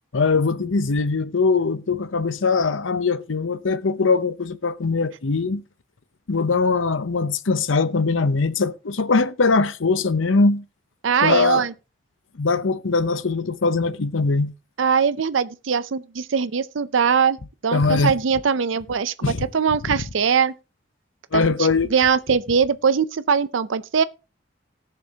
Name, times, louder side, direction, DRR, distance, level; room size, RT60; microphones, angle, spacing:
voice 1, 0.1-5.6 6.3-10.6 11.2-11.7 12.3-14.5 17.7-18.1 19.2-19.4 21.3-21.9, left 4 dB, 85° left, 0.7 m, -21 dB
voice 2, 11.0-11.7 14.8-17.4 17.6-19.1 19.5-20.5 21.3-24.0, right 6 dB, 80° right, 0.5 m, -21 dB
19.0 x 6.8 x 2.8 m
head